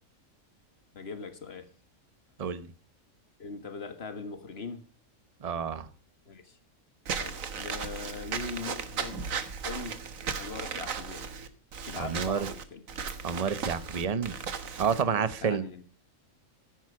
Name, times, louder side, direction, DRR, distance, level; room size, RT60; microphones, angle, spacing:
voice 1, 0.9-1.7 3.4-4.9 6.3-6.6 7.2-9.3 9.6-10.0 10.3-11.3 11.8-12.8 15.1-15.8, left 4 dB, 45° left, 1.9 m, -41 dB
voice 2, 5.4-5.9 12.0-12.5 13.2-14.4 14.8-15.6, right 6 dB, 30° right, 0.9 m, -29 dB
Walk footsteps / Squeak, 7.1-15.0, right 6 dB, 65° right, 1.7 m, -36 dB
14.0 x 11.0 x 4.8 m
omnidirectional pair, 1.5 m